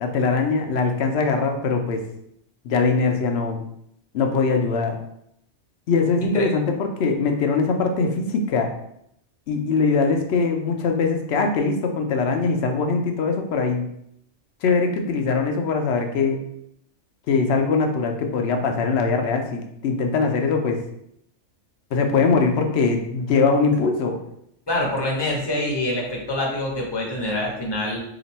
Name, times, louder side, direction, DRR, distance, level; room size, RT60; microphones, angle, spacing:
voice 1, 0.0-2.0 2.6-3.6 4.1-5.0 5.9-8.7 9.5-13.9 14.6-16.4 17.3-20.8 21.9-24.2, left 4 dB, 65° left, 4 dB, 0.8 m, -22 dB
voice 2, 24.7-28.0, left 1 dB, 25° left, -2 dB, 0.7 m, -25 dB
2.9 x 2.5 x 4.0 m, 0.73 s
omnidirectional pair, 1.3 m